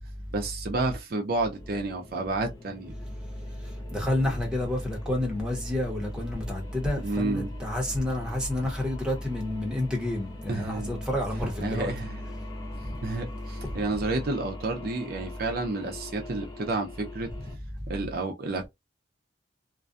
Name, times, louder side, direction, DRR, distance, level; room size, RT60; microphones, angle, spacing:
voice 1, 0.3-2.9 7.0-7.5 10.5-11.0 11.6-12.2 13.0-17.3 17.9-18.7, right 2 dB, 60° right, 0.5 m, -30 dB
sound 1, 1.3-17.6, left 3 dB, 20° left, 0.6 m, -47 dB
voice 2, 3.9-11.9, left 1 dB, 5° right, 0.8 m, -29 dB
2.5 x 2.2 x 2.4 m
head